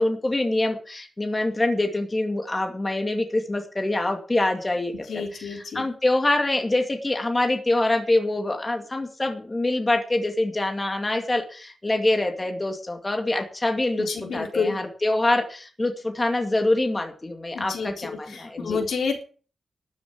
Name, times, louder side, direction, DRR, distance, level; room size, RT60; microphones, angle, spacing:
voice 1, 0.0-5.2 5.7-14.1 14.3-18.8, left 2 dB, 20° left, 4 dB, 2.2 m, -25 dB
voice 2, 5.1-5.8 14.0-14.8 17.5-19.2, left 5 dB, 85° left, 2 dB, 4.0 m, -29 dB
13.0 x 7.2 x 8.7 m, 0.39 s
wide cardioid pair, 150°, 0 cm